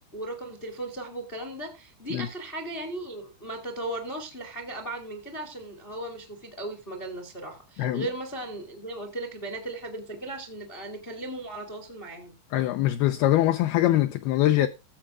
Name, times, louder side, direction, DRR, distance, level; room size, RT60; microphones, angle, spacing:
voice 1, 0.1-12.3, right 2 dB, 45° left, 0.7 m, -37 dB
voice 2, 12.5-14.7, left 14 dB, 80° left, 2.3 m, -23 dB
15.0 x 5.1 x 4.8 m
omnidirectional pair, 5.1 m